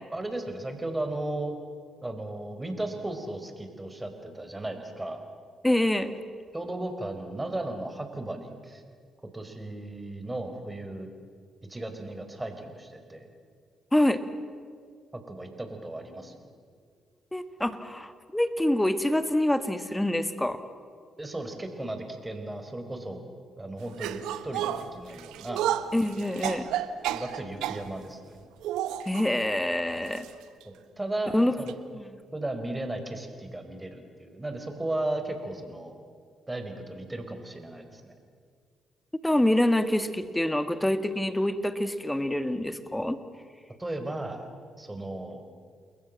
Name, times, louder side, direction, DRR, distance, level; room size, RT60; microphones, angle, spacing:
voice 1, 0.1-1.5 2.0-5.2 6.5-8.8 9.3-11.1 11.7-13.3 15.1-16.5 21.2-23.2 23.6-25.7 27.1-28.2 30.6-31.7 32.3-35.9 36.5-38.1 43.8-44.5 44.8-45.5, right 2 dB, 15° right, 6 dB, 4.6 m, -35 dB
voice 2, 5.6-6.1 13.9-14.2 17.3-20.6 25.9-26.7 29.1-30.3 31.3-31.5 31.9-32.0 39.2-43.2, left 1 dB, 10° left, 11 dB, 2.0 m, -26 dB
sound 1, 24.0-27.9 28.6-29.3 30.1-30.3 30.6-30.7 31.7-31.8, right 11 dB, 75° right, 1.0 m, -31 dB
29.5 x 21.5 x 7.6 m, 2.1 s
hypercardioid pair, 45°, 0 cm